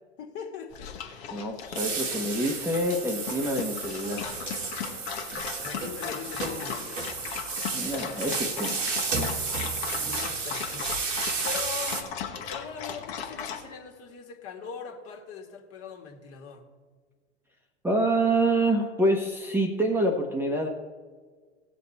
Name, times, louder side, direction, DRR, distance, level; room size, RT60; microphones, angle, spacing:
voice 1, 0.2-1.2 2.0-2.2 5.6-7.2 10.0-11.1 11.4-12.1 12.5-16.7, left 6 dB, 40° left, 3 dB, 1.9 m, -41 dB
Dog, 0.7-13.6, left 7 dB, 60° left, 1.5 m, -37 dB
voice 2, 1.3-4.4 7.7-8.8 17.8-20.7, right 1 dB, 5° right, 1 dB, 1.0 m, -26 dB
sound 1, 1.7-12.0, right 4 dB, 85° right, 1.7 m, -32 dB
16.5 x 6.8 x 4.2 m, 1.5 s
hypercardioid pair, 100°, 37 cm